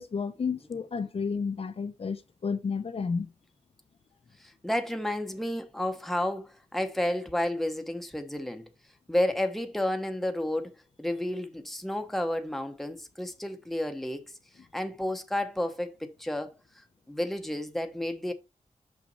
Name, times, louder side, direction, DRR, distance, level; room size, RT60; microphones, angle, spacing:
voice 1, 0.0-3.3, left 5 dB, 45° left, 0.7 m, -31 dB
voice 2, 4.4-8.7 9.1-14.2 14.7-16.5 17.1-18.3, left 1 dB, ahead, 0.9 m, -31 dB
6.6 x 5.7 x 4.0 m
wide cardioid pair, 160°, 13 cm